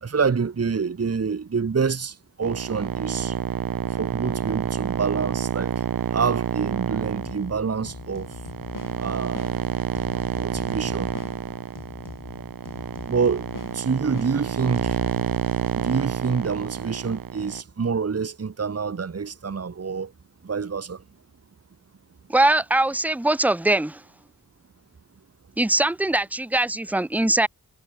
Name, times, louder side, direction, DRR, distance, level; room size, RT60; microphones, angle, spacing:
voice 1, 0.0-3.4 4.0-5.7 6.1-8.3 9.0-9.5 10.3-11.1 13.1-13.5 13.7-15.0 15.7-20.1 20.4-21.0, right 5 dB, 45° right, 1.3 m, -27 dB
sound 1, 2.4-17.6, right 8 dB, 90° right, 1.4 m, -29 dB
sound 2, 7.1-15.4, left 5 dB, 70° left, 7.0 m, -42 dB
voice 2, 22.3-24.0 25.6-27.5, right 2 dB, 5° right, 0.8 m, -21 dB
cardioid pair, 60°, 34 cm